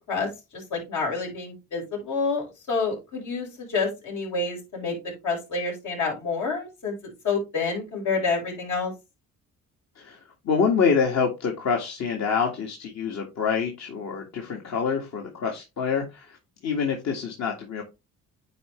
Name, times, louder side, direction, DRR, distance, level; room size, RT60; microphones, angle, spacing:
voice 1, 0.0-5.0 5.2-6.9 7.2-8.9, left 4 dB, 75° left, 0 dB, 4.7 m, -28 dB
voice 2, 10.0-16.4 16.6-17.8, left 6 dB, 60° left, 1 dB, 2.0 m, -26 dB
9.2 x 4.8 x 3.2 m, 0.24 s
cardioid pair, 90°, 30 cm